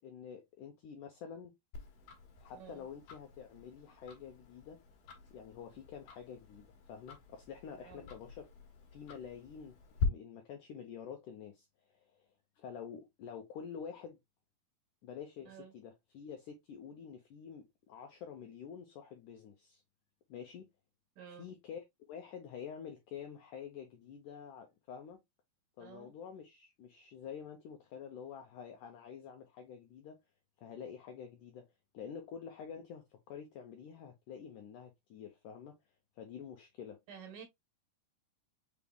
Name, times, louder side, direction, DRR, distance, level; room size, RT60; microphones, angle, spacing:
voice 1, 0.0-1.6 2.4-4.8 5.3-8.5 8.9-9.7 10.0-12.3 12.6-14.2 15.0-19.8 20.3-20.7 21.3-25.2 25.8-30.2 30.6-31.7 31.9-35.8 36.1-37.0, left 7 dB, 85° left, 1.8 m, -48 dB
Tick-tock, 1.7-10.1, left 4 dB, 65° left, 2.5 m, -44 dB
voice 2, 2.5-2.9 7.8-8.0 15.5-15.7 21.2-21.5 25.8-26.1 37.1-37.5, right 7 dB, 70° right, 2.4 m, -51 dB
5.9 x 3.5 x 2.2 m
omnidirectional pair, 4.6 m